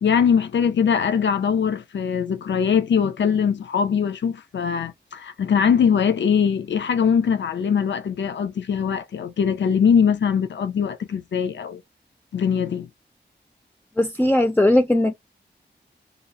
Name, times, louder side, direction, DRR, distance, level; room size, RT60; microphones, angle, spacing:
voice 1, 0.0-11.8 12.3-12.9, left 7 dB, 85° left, 0.4 m, -21 dB
voice 2, 14.0-15.1, left 1 dB, 10° left, 0.4 m, -18 dB
2.8 x 2.3 x 2.4 m
wide cardioid pair, 75°, 18 cm